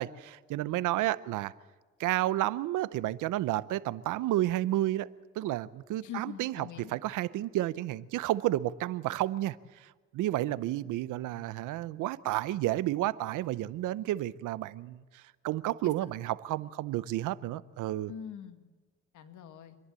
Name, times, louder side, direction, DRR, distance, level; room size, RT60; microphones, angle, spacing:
voice 1, 0.0-1.5 2.0-5.1 5.3-18.1, right 15 dB, 90° right, 18 dB, 0.7 m, -31 dB
voice 2, 6.0-6.9 15.8-15.9 18.1-18.7 19.1-19.8, left 8 dB, 75° left, 8 dB, 1.9 m, -43 dB
27.0 x 11.0 x 8.9 m, 1.3 s
cardioid pair, 90°, 30 cm